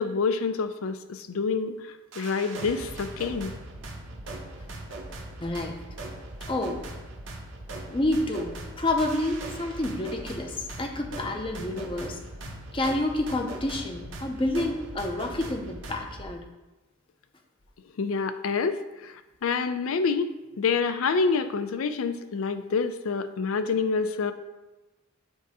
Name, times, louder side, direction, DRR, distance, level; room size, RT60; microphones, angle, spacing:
voice 1, 0.0-1.8 2.2-3.5 18.0-19.1 19.4-20.3 20.6-24.3, left 5 dB, 75° left, 10 dB, 0.4 m, -27 dB
sound 1, 2.1-16.3, right 2 dB, 60° right, 0.9 m, -40 dB
voice 2, 5.4-5.8 6.5-6.8 7.9-16.4, left 1 dB, 25° left, 4 dB, 0.5 m, -29 dB
7.9 x 2.7 x 4.7 m, 1.1 s
head